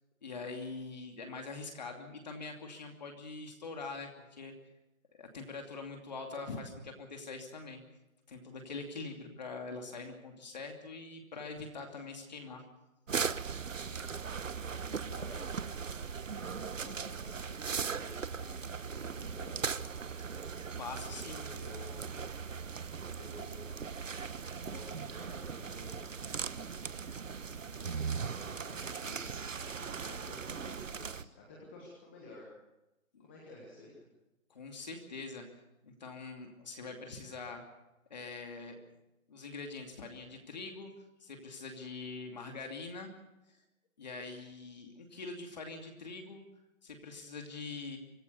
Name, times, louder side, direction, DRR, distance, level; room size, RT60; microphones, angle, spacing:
voice 1, 0.2-4.5 5.2-7.8 8.3-12.6 20.8-21.5 33.1-33.3 34.5-35.5 35.8-37.6 38.1-38.8 39.3-40.9 41.2-43.1 44.0-46.4 46.8-48.0, left 3 dB, 30° left, 3 dB, 2.7 m, -43 dB
sound 1, 13.1-31.2, right 6 dB, 65° right, 1.2 m, -39 dB
voice 2, 13.9-14.5 15.1-15.4 16.6-19.7 21.0-22.3 23.1-24.1 24.6-25.9 26.4-27.0 27.8-32.5 33.2-34.0, left 2 dB, 10° left, -3 dB, 1.5 m, -52 dB
25.0 x 17.5 x 6.9 m, 0.99 s
hypercardioid pair, 175°, 41 cm